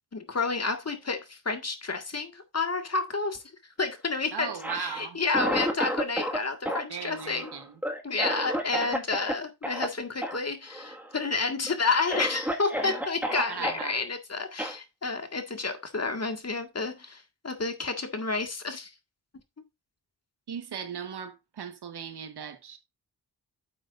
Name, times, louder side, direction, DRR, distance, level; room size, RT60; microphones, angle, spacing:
voice 1, 0.1-7.5 8.0-18.9, left 4 dB, 40° left, 1.9 m, -30 dB
voice 2, 4.3-5.2 6.9-7.8 13.5-14.0 20.5-22.8, right 7 dB, 80° right, 1.4 m, -38 dB
Cough, 4.5-6.4 6.7-9.3 9.6-9.9 10.2-10.4 10.7-11.2 11.7-11.8 12.1-13.8 14.6-14.8, equal, 5° right, 1.8 m, -31 dB
9.8 x 7.2 x 2.6 m
cardioid pair, 70°, 39 cm